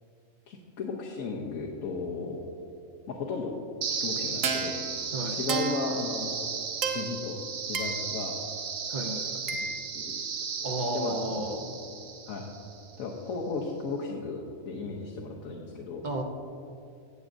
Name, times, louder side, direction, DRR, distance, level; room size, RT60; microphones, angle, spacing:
voice 1, 0.5-2.5 3.1-3.5 4.0-4.8 5.3-6.3 6.9-7.4 7.7-8.4 9.6-9.7 9.9-10.2 10.9-11.4 12.3-12.4 13.0-16.0, left 4 dB, 85° left, -1 dB, 1.3 m, -35 dB
sound 1, 3.8-12.8, right 5 dB, 80° right, 1.2 m, -33 dB
voice 2, 8.9-9.4 10.6-11.7 16.0-16.2, right 1 dB, 45° right, 2 dB, 0.7 m, -32 dB
18.0 x 7.3 x 2.6 m, 2.6 s
omnidirectional pair, 1.4 m